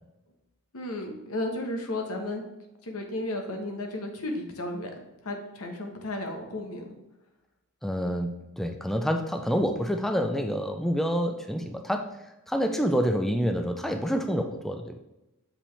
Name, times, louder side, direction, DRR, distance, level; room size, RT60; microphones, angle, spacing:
voice 1, 0.7-2.4 2.8-4.9 5.2-6.9, left 1 dB, 70° left, 4 dB, 1.1 m, -33 dB
voice 2, 7.8-12.2 12.5-15.0, equal, ahead, 5 dB, 0.3 m, -27 dB
7.2 x 5.0 x 3.3 m, 0.98 s
head